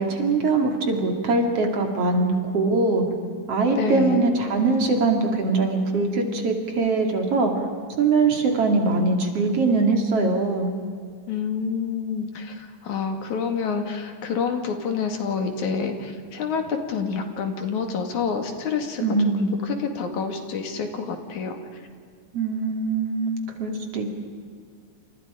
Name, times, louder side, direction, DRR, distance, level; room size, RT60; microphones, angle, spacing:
voice 1, 0.0-3.0 3.5-7.7 8.0-10.7 19.0-19.5 22.3-24.1, right 3 dB, 55° right, 3 dB, 3.5 m, -22 dB
voice 2, 3.7-4.3 11.3-21.6, left 5 dB, 75° left, 5 dB, 3.6 m, -28 dB
29.0 x 28.0 x 5.1 m, 2.1 s
omnidirectional pair, 3.4 m